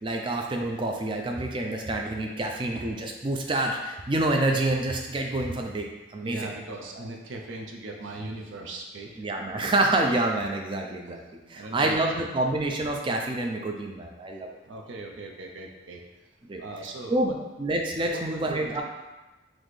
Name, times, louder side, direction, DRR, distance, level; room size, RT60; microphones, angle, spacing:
voice 1, 0.0-5.9 6.1-6.5 9.2-11.2 11.5-14.5 16.5-16.6 17.1-18.8, right 2 dB, 25° right, 2 dB, 0.4 m, -27 dB
voice 2, 6.2-9.2 11.5-12.2 14.7-16.0 16.6-17.3 18.1-18.8, right 2 dB, 80° right, 1 dB, 0.6 m, -39 dB
4.1 x 3.0 x 3.1 m, 1.1 s
head